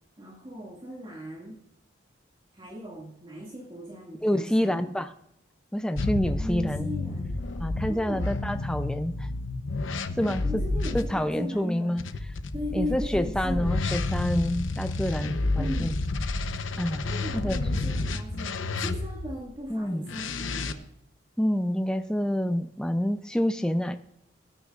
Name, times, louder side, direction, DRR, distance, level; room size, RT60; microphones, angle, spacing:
voice 1, 0.2-1.6 2.5-4.9 6.4-7.3 7.9-8.3 10.4-12.0 12.5-13.8 15.6-16.0 17.0-20.9, equal, 25° right, -3 dB, 2.1 m, -38 dB
voice 2, 4.2-5.1 5.7-6.9 7.6-9.3 10.2-10.6 10.9-12.0 12.7-15.9 16.8-17.1 17.3-17.6 19.7-20.1 21.4-24.0, equal, 5° left, 9 dB, 0.4 m, -27 dB
sound 1, 5.9-11.0 12.0-19.3 20.1-20.7, left 2 dB, 85° left, 0.8 m, -30 dB
18.5 x 9.6 x 2.5 m, 0.76 s
head